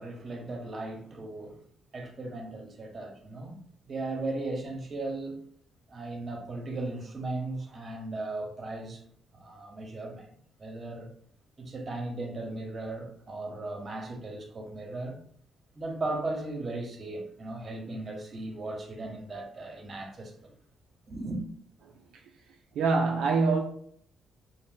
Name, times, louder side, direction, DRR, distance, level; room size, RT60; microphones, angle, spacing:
voice 1, 0.0-1.6 1.9-3.6 3.9-5.4 5.9-9.0 9.3-10.3 10.6-11.1 11.6-15.2 15.8-20.5 21.1-21.4, right 2 dB, 40° right, 0.8 m, -37 dB
voice 2, 22.7-23.6, right 4 dB, 85° right, 0.3 m, -24 dB
2.5 x 2.0 x 3.6 m
cardioid pair, 75°, 0 cm